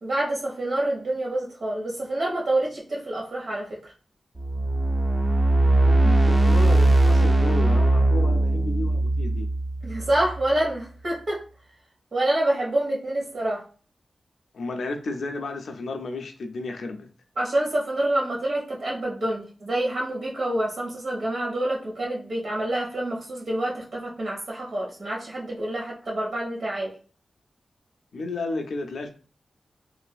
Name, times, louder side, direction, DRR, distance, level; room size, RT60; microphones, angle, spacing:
voice 1, 0.0-3.9 9.8-11.4 12.1-13.6 17.4-26.9, right 1 dB, 65° right, 1.2 m, -27 dB
sound 1, 4.4-10.6, right 2 dB, 30° right, 0.3 m, -20 dB
voice 2, 5.6-9.5 14.5-17.1 28.1-29.1, left 3 dB, 80° left, 0.4 m, -32 dB
3.1 x 2.5 x 2.3 m
wide cardioid pair, 90°, 0 cm